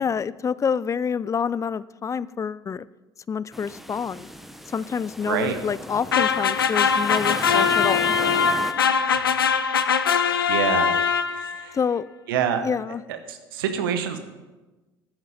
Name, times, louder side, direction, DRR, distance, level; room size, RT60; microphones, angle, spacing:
voice 1, 0.0-2.9 3.3-4.3 4.7-8.1 11.7-12.1 12.6-13.0, left 6 dB, 25° left, 19 dB, 0.4 m, -27 dB
sound 1, 3.5-8.7, equal, ahead, 1.1 m, -36 dB
voice 2, 5.3-5.6 9.0-9.3 10.5-11.0 11.3-11.8 12.3-12.6 13.1-14.2, right 8 dB, 75° right, 8 dB, 1.1 m, -27 dB
sound 2, 6.1-11.6, left 6 dB, 90° left, 0.5 m, -21 dB
11.0 x 9.7 x 5.0 m, 1.1 s
hypercardioid pair, 60°, 12 cm